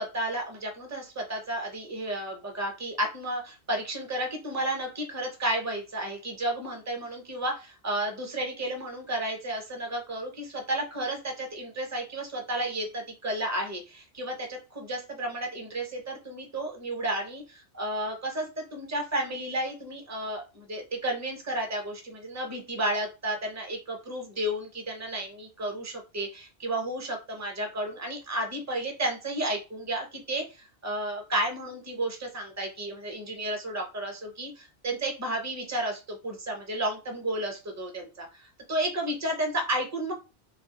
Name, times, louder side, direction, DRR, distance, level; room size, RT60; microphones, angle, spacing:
voice 1, 0.0-40.1, right 1 dB, 20° right, 1 dB, 0.6 m, -32 dB
2.5 x 2.4 x 2.8 m, 0.29 s
omnidirectional pair, 1.1 m